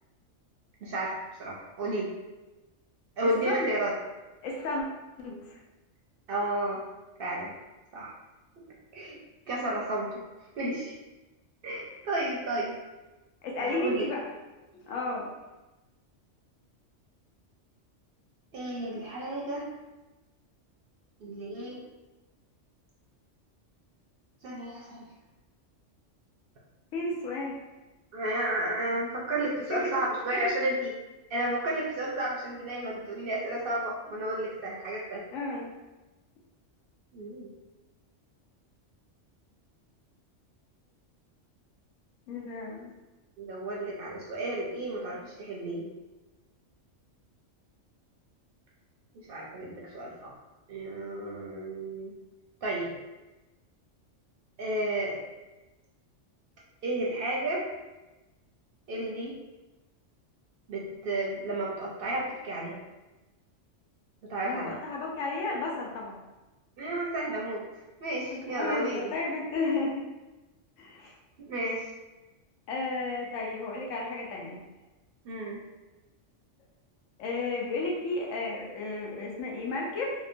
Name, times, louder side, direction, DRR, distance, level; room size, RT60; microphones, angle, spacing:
voice 1, 0.8-2.1 3.2-3.9 6.3-6.8 7.2-7.5 7.9-8.1 8.9-9.2 9.5-10.2 10.6-10.9 11.6-12.7 13.6-14.1 18.5-19.7 21.2-21.8 24.4-25.0 28.1-30.9 31.3-35.2 37.1-37.5 43.4-45.9 49.3-50.3 50.7-52.1 52.6-52.9 54.6-55.2 56.8-57.6 58.9-59.3 60.7-62.8 64.2-64.8 66.8-67.6 68.0-69.1 71.4-71.9 75.2-75.6, right 1 dB, 60° right, -4 dB, 0.6 m, -32 dB
voice 2, 4.4-4.9 5.2-5.6 13.4-14.2 14.9-15.3 26.9-27.5 29.7-29.9 30.3-30.5 35.3-35.7 42.3-42.9 64.4-66.2 68.3-70.0 70.8-71.1 72.7-74.6 77.2-80.1, left 3 dB, 85° left, -2 dB, 1.0 m, -33 dB
2.8 x 2.1 x 2.5 m, 1.1 s
omnidirectional pair, 1.3 m